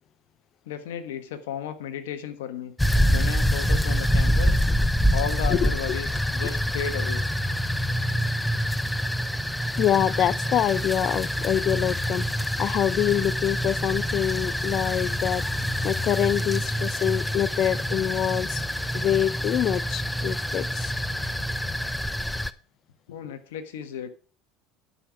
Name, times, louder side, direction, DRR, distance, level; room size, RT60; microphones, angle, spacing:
voice 1, 0.7-2.7 3.1-4.6 5.1-7.2 23.1-24.1, left 9 dB, 85° left, 1.4 m, -34 dB
sound 1, 2.8-22.5, equal, 5° left, 0.7 m, -26 dB
voice 2, 9.8-12.2 12.6-15.4 15.8-18.6 18.9-20.9, left 11 dB, 50° left, 0.6 m, -25 dB
11.0 x 5.6 x 5.9 m
supercardioid pair, 100°, 0 cm